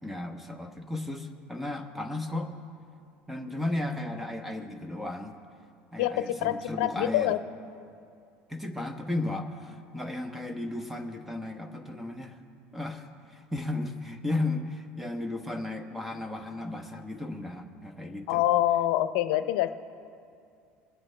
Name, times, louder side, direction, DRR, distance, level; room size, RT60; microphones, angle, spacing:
voice 1, 0.0-2.5 3.3-5.3 5.9-7.3 8.5-12.4 12.7-18.5, left 2 dB, 5° right, 5 dB, 0.9 m, -34 dB
voice 2, 6.0-7.4 18.3-19.7, left 13 dB, 80° left, 12 dB, 0.6 m, -26 dB
21.5 x 8.9 x 3.3 m, 2.4 s
cardioid pair, 130°, 4 cm